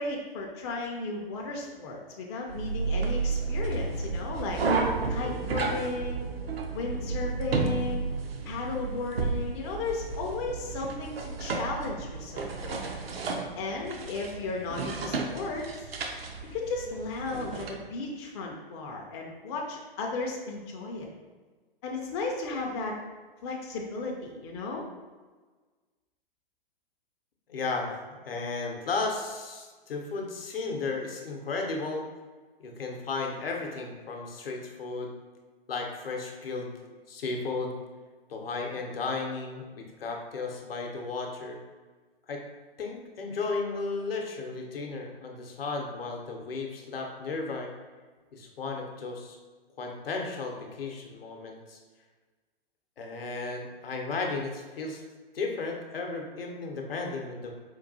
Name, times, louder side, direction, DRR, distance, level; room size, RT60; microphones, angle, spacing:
voice 1, 0.0-4.6 5.1-6.2 6.7-8.0 8.4-12.8 13.6-15.7 16.4-21.1 21.8-23.0 23.4-24.8, left 3 dB, 30° left, 0 dB, 0.4 m, -35 dB
sound 1, 2.5-17.7, right 4 dB, 75° right, 0.6 m, -32 dB
voice 2, 27.5-32.0 32.6-35.2 35.7-36.7 37.1-37.8 38.3-41.6 42.3-42.4 42.8-47.7 48.3-49.4 49.8-51.8 53.0-55.0 55.3-57.5, left 3 dB, 75° left, 1 dB, 0.7 m, -34 dB
4.4 x 2.3 x 2.6 m, 1.4 s
figure-of-eight pair, 115°, 30 cm